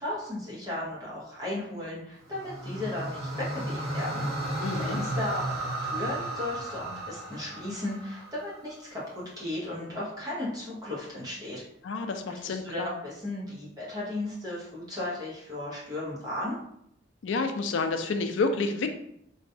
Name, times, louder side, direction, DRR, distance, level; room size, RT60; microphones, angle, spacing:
voice 1, 0.0-4.3 4.7-11.6 12.3-16.6, left 1 dB, 20° right, -7 dB, 0.8 m, -35 dB
sound 1, 2.2-8.6, right 1 dB, 50° right, 1.1 m, -34 dB
voice 2, 4.6-5.0 11.8-12.9 17.2-18.9, left 3 dB, 70° left, 7 dB, 0.4 m, -29 dB
3.9 x 2.2 x 2.6 m, 0.74 s
head